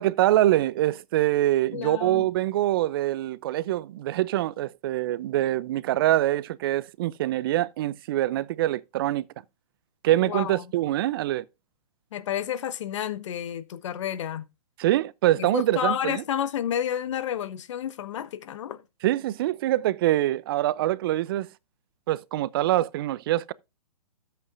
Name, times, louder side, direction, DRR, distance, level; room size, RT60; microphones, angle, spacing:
voice 1, 0.0-9.2 10.0-11.4 14.8-16.2 19.0-21.5 22.1-23.5, right 14 dB, 40° right, 0.5 m, -24 dB
voice 2, 1.7-2.3 10.2-10.7 12.1-14.4 15.4-18.8, left 10 dB, 50° left, 1.3 m, -30 dB
13.5 x 8.1 x 2.5 m
figure-of-eight pair, 130°, 19 cm